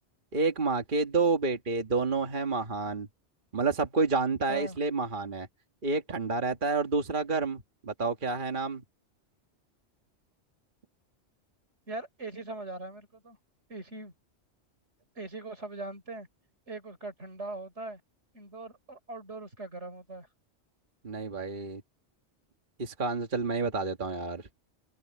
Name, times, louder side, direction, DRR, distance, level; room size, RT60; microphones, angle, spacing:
voice 1, 0.3-3.1 3.5-5.5 5.8-8.8 21.0-21.8 22.8-24.4, right 4 dB, 45° right, 1.7 m, -29 dB
voice 2, 11.9-13.4 13.7-14.1 15.2-16.3 16.7-18.0 18.3-20.3, right 2 dB, 80° right, 4.7 m, -40 dB
omnidirectional pair, 1.2 m